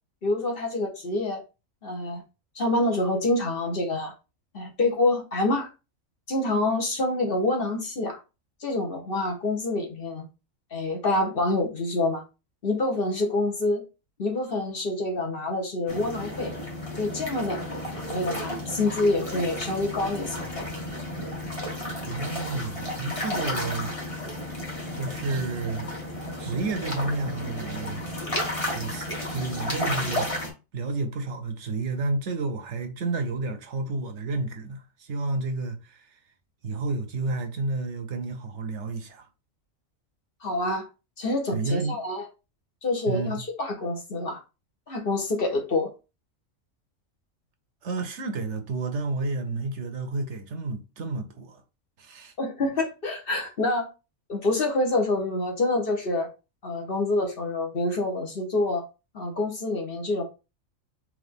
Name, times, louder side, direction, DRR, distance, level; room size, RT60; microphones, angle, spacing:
voice 1, 0.2-1.4 1.8-2.2 2.5-4.1 4.5-5.7 6.3-8.2 8.6-10.2 10.7-12.2 12.6-13.8 14.2-16.5 17.0-17.6 18.0-20.7 40.4-40.9 41.2-42.3 42.8-44.4 44.9-45.9 52.4-53.9 54.3-56.3 56.6-58.8 59.1-60.2, left 2 dB, 45° left, 1.1 m, -27 dB
sound 1, 15.9-30.5, left 1 dB, 25° left, 1.4 m, -33 dB
voice 2, 22.1-23.9 24.9-25.9 26.4-28.3 28.7-30.3 30.7-36.2 36.6-39.3 41.5-42.0 43.1-43.4 47.8-51.6 52.0-52.3, right 3 dB, 65° right, 1.0 m, -31 dB
3.8 x 3.0 x 3.5 m
omnidirectional pair, 1.4 m